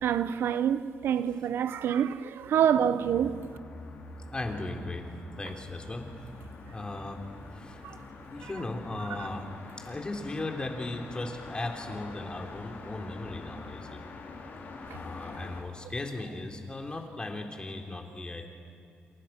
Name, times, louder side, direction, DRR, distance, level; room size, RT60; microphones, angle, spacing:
voice 1, 0.0-3.5 7.8-8.0, right 9 dB, 80° right, 1.0 m, -27 dB
sound 1, 3.0-15.6, left 3 dB, 60° left, 5.1 m, -45 dB
voice 2, 4.3-5.1 5.4-6.1 6.7-7.2 7.6-7.8 8.3-9.5 9.9-14.0 14.9-18.5, left 2 dB, 25° left, 3.7 m, -37 dB
29.0 x 27.5 x 6.0 m
cardioid pair, 100°, 4 cm